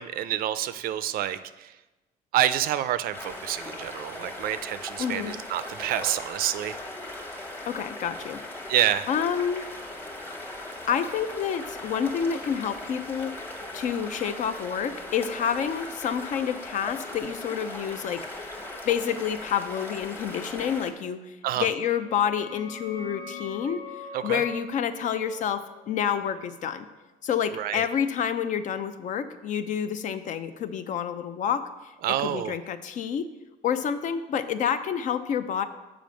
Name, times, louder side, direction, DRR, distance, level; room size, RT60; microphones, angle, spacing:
voice 1, 0.0-1.7 2.3-6.8 8.7-9.1 21.4-21.7 24.1-24.4 27.5-27.9 32.0-32.6, right 12 dB, 65° right, 14 dB, 0.4 m, -28 dB
sound 1, 3.1-20.9, left 1 dB, 10° left, 1.0 m, -39 dB
voice 2, 5.0-5.4 7.7-8.7 9.1-9.7 10.9-13.3 13.7-18.5 18.8-26.9 27.2-31.7 32.1-33.3 33.6-35.7, left 8 dB, 50° left, 11 dB, 0.5 m, -28 dB
sound 2, 21.6-27.0, left 5 dB, 85° left, 1.2 m, -43 dB
7.1 x 5.0 x 6.2 m, 1.1 s
cardioid pair, 150°, 16 cm